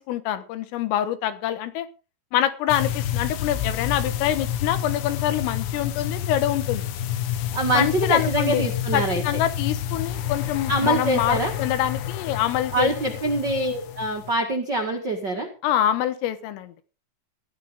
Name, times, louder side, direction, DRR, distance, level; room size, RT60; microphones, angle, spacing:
voice 1, 0.0-1.9 2.3-6.9 7.7-8.7 8.9-12.9 15.6-16.7, left 11 dB, 90° left, 11 dB, 3.9 m, -25 dB
Shadow Maker - Cellar, 2.7-14.4, left 10 dB, 75° left, 2.4 m, -29 dB
voice 2, 7.5-9.2 10.7-11.5 12.7-15.5, right 1 dB, 75° right, 1 dB, 1.0 m, -24 dB
15.5 x 12.5 x 3.7 m, 0.34 s
omnidirectional pair, 5.7 m